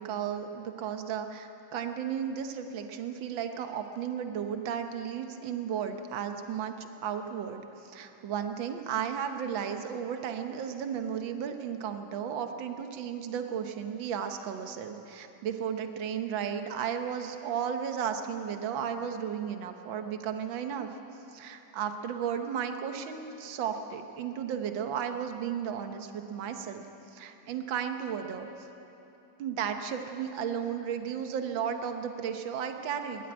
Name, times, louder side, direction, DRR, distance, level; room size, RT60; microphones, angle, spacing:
voice 1, 0.0-20.9 21.3-26.8 27.1-28.5 29.4-33.3, right 8 dB, 70° right, 6 dB, 1.8 m, -34 dB
21.0 x 13.0 x 9.5 m, 3.0 s
omnidirectional pair, 2.2 m